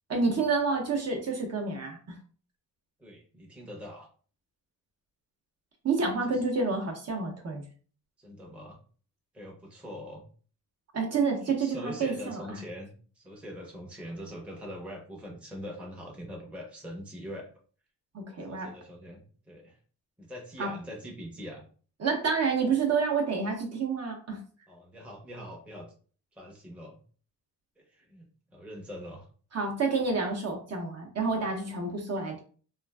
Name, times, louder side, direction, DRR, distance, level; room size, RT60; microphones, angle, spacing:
voice 1, 0.1-2.2 5.8-7.6 10.9-12.6 18.1-18.7 20.6-20.7 22.0-24.4 29.5-32.4, right 4 dB, 45° right, 2 dB, 0.6 m, -29 dB
voice 2, 3.0-4.1 6.3-6.4 8.2-8.8 9.3-10.2 11.4-17.5 18.5-19.8 20.2-21.6 24.7-25.9 26.4-27.0 27.8-29.3, equal, 5° right, -1 dB, 0.6 m, -43 dB
3.1 x 2.4 x 2.2 m, 0.41 s
wide cardioid pair, 130°, 35 cm